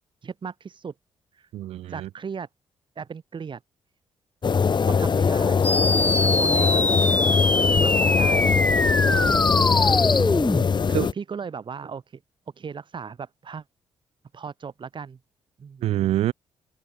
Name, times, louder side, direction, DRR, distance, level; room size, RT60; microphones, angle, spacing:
voice 1, 0.2-0.9 1.3-1.5 1.9-2.5 3.0-3.6 4.8-5.6 6.2-7.2 7.7-8.6 9.2-9.4 9.8-10.2 11.1-12.2 12.6-13.6 14.3-15.2 15.6-15.9, right 6 dB, 50° right, 3.0 m, -36 dB
voice 2, 1.5-2.1 9.0-9.9 10.9-11.1 15.8-16.3, right 13 dB, 75° right, 1.2 m, -27 dB
sound 1, 4.4-11.1, left 6 dB, 45° left, 1.5 m, -21 dB
sound 2, 5.6-10.6, left 2 dB, 15° left, 2.1 m, -23 dB
hypercardioid pair, 50°, 11 cm